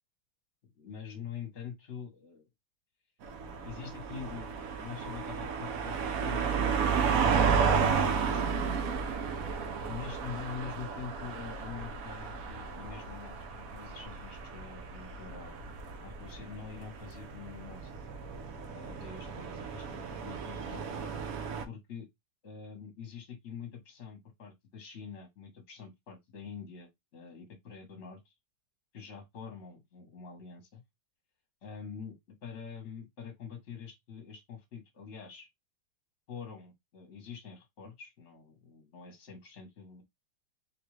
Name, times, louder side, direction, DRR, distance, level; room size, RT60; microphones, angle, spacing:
voice 1, 0.7-2.5 3.6-8.8 9.9-15.6 16.0-17.9 18.7-21.1 21.6-22.1 22.4-28.3 28.9-30.8 31.6-32.2 32.4-35.5 36.3-40.0, left 7 dB, 45° left, 1.2 m, -45 dB
sound 1, 3.2-21.6, right 6 dB, 70° right, 0.9 m, -33 dB
3.6 x 2.4 x 3.1 m
omnidirectional pair, 2.0 m